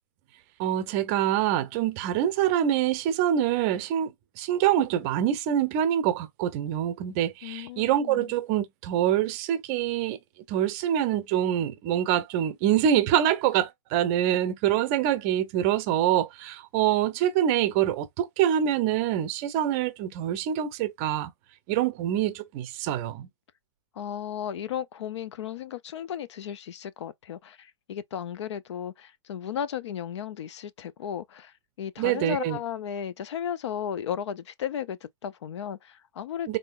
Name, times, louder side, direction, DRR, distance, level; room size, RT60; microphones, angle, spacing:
voice 1, 0.6-4.1 4.4-10.2 10.5-21.3 21.7-23.3 32.0-32.6 36.5-36.6, right 11 dB, 25° right, 0.5 m, -25 dB
voice 2, 7.4-8.3 24.0-36.6, left 9 dB, 65° left, 0.5 m, -35 dB
3.7 x 3.6 x 2.5 m
hypercardioid pair, 160°, 16 cm